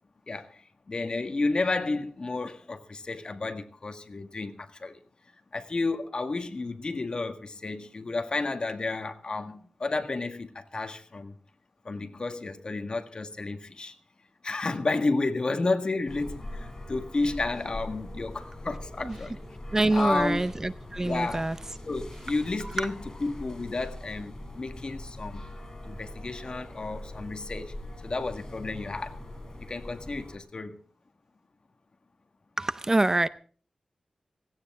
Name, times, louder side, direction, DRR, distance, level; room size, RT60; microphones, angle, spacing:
voice 1, 0.3-5.0 5.5-11.3 11.8-13.9 14.4-19.4 19.9-20.4 21.0-21.5 21.8-25.5 25.8-27.8 28.0-29.2 29.6-30.8, left 3 dB, 45° left, 1.7 m, -31 dB
sound 1, 16.1-30.4, left 1 dB, 30° left, 4.1 m, -42 dB
voice 2, 19.7-21.6 32.6-33.3, right 2 dB, 25° right, 0.6 m, -25 dB
18.0 x 16.5 x 3.7 m
wide cardioid pair, 110°, 2 cm